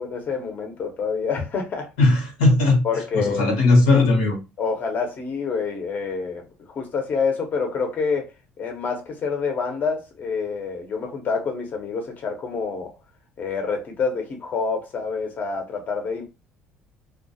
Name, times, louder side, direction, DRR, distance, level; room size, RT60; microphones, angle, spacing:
voice 1, 0.0-1.9 2.8-3.5 4.6-8.3 8.6-12.9 13.4-16.3, left 5 dB, 45° left, 0.8 m, -27 dB
voice 2, 2.0-2.8 3.1-4.4, left 2 dB, 90° left, 1.0 m, -17 dB
2.3 x 2.2 x 2.7 m
supercardioid pair, 85°, 4 cm